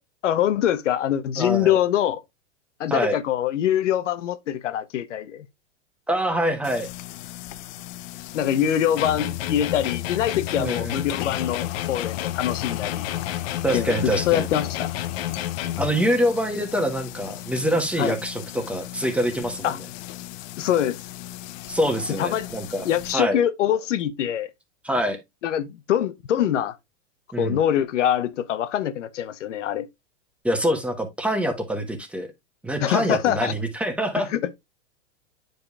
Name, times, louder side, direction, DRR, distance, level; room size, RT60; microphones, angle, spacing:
voice 1, 0.2-2.2 2.8-5.5 8.3-13.1 13.7-14.9 18.0-18.2 19.6-19.8 20.6-21.0 22.2-22.5 22.8-24.5 25.4-26.8 27.4-29.9 32.8-33.5 34.2-34.7, left 10 dB, 85° left, 0.8 m, -24 dB
voice 2, 1.4-1.8 2.9-3.2 6.1-6.9 10.6-11.0 13.6-14.5 15.8-19.8 21.7-22.8 23.1-23.4 24.8-25.2 27.3-27.6 30.4-32.3 32.6-34.3, equal, 5° right, 1.1 m, -25 dB
sound 1, 6.6-23.1, left 15 dB, 40° left, 0.5 m, -38 dB
sound 2, 9.0-16.0, left 12 dB, 55° left, 1.0 m, -30 dB
9.1 x 5.2 x 2.3 m
hypercardioid pair, 135°, 35 cm